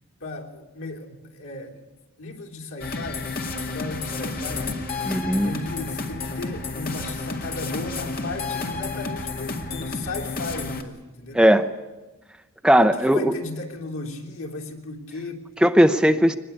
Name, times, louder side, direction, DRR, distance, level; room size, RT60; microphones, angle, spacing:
voice 1, 0.2-1.8 2.2-3.3 3.6-4.7 5.4-11.4 12.9-15.4 16.0-16.1, left 2 dB, 85° left, 0 dB, 3.3 m, -35 dB
sound 1, 2.8-10.8, left 3 dB, 45° left, 2.1 m, -31 dB
voice 2, 5.0-5.5 11.3-11.7 12.6-13.3 15.6-16.4, equal, 5° right, 8 dB, 0.7 m, -17 dB
23.0 x 20.0 x 8.6 m, 1.1 s
head